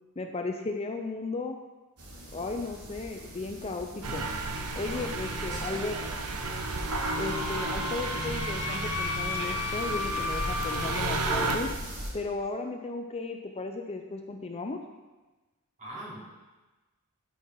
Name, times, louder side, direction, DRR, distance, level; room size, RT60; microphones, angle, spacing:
voice 1, 0.2-1.6 2.3-4.2 4.8-6.0 7.2-11.7 12.1-14.8, left 3 dB, 30° left, 4 dB, 0.6 m, -35 dB
sound 1, 2.0-12.1, equal, 90° right, 2.3 m, -42 dB
sound 2, 4.0-11.6, right 2 dB, 70° right, 1.0 m, -32 dB
voice 2, 4.8-6.1 15.8-16.2, right 1 dB, 35° right, -7 dB, 3.7 m, -43 dB
Wind instrument woodwind instrument, 6.9-11.0, left 6 dB, 75° left, 0.6 m, -35 dB
12.5 x 5.7 x 4.7 m, 1.2 s
head